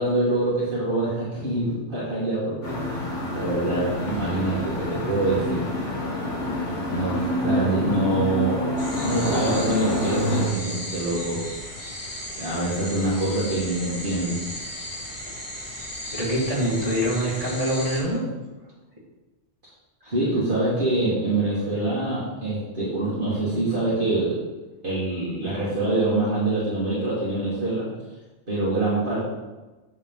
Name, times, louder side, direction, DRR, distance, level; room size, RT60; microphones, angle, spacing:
voice 1, 0.0-5.7 6.9-8.6 9.0-11.4 12.4-14.4 20.0-24.4 24.8-27.9 28.5-29.3, right 2 dB, 45° right, -9 dB, 2.3 m, -25 dB
sound 1, 2.6-10.5, left 1 dB, 70° left, 2.7 m, -27 dB
sound 2, 8.8-18.0, left 1 dB, 25° left, 1.9 m, -36 dB
voice 2, 16.1-18.3, equal, 30° right, -7 dB, 2.6 m, -24 dB
8.4 x 6.5 x 3.9 m, 1.2 s
omnidirectional pair, 1.3 m